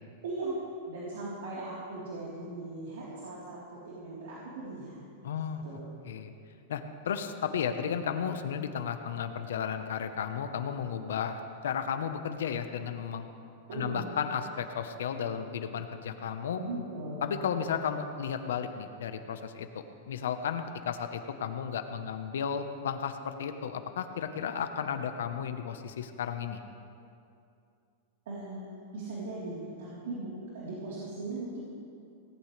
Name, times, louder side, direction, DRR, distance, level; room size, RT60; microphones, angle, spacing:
voice 1, 0.2-0.5 0.9-5.0 5.6-6.0 13.7-14.1 16.6-17.2 28.3-31.6, right 2 dB, 80° right, -7 dB, 3.8 m, -39 dB
voice 2, 5.2-5.6 6.0-6.3 6.7-13.3 13.7-16.6 17.2-19.7 20.1-26.6, left 7 dB, 90° left, 8 dB, 1.0 m, -33 dB
18.5 x 18.0 x 3.4 m, 2.5 s
supercardioid pair, 150°, 0 cm